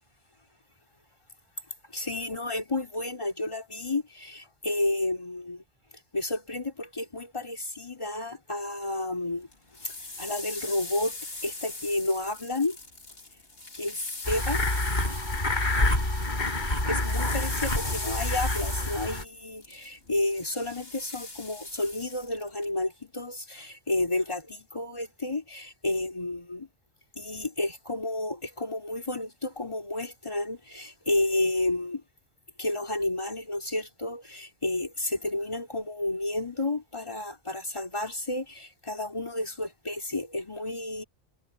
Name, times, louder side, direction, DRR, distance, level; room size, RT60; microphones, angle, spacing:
voice 1, 1.9-5.6 6.1-9.5 9.8-12.8 13.7-14.6 16.9-26.7 27.1-32.0 32.6-41.0, left 2 dB, 25° left, 2.9 m, -31 dB
sound 1, 9.5-16.3 16.6-22.7, left 2 dB, 60° left, 3.3 m, -40 dB
sound 2, 14.2-19.2, left 2 dB, 45° left, 5.6 m, -27 dB
omnidirectional pair, 1.1 m